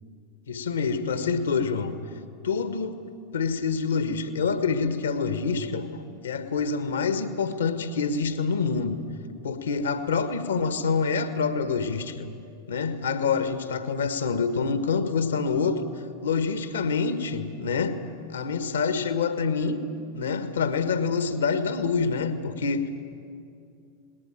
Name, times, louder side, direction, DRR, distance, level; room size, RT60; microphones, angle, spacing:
voice 1, 0.5-2.0 2.4-3.0 3.3-9.0 9.4-12.3 12.7-15.9 16.2-18.0 18.3-19.8 20.1-22.9, left 5 dB, 65° left, 10 dB, 1.4 m, -26 dB
19.5 x 19.0 x 9.0 m, 2.5 s
figure-of-eight pair, 90°, 0 cm